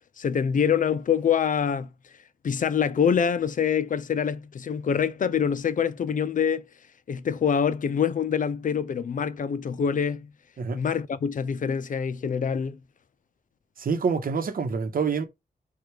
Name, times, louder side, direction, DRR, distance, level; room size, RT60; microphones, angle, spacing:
voice 1, 0.2-1.9 2.4-6.6 7.1-10.3 10.7-12.8, left 7 dB, 55° left, 0.5 m, -25 dB
voice 2, 13.8-15.2, right 5 dB, 65° right, 1.0 m, -26 dB
4.7 x 2.4 x 4.7 m
wide cardioid pair, 90°, 16 cm